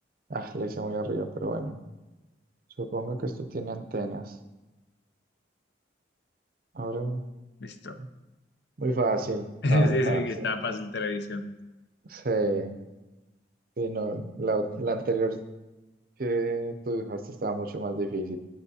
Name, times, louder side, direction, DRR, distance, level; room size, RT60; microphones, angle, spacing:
voice 1, 0.3-1.8 2.8-4.4 6.7-7.2 8.0-8.1 8.8-10.3 12.1-12.7 13.8-15.4 16.2-18.4, right 2 dB, 50° right, 8 dB, 0.5 m, -30 dB
voice 2, 7.6-8.0 9.6-11.4, left 1 dB, 65° left, 8 dB, 0.6 m, -27 dB
9.2 x 7.0 x 2.7 m, 1.1 s
head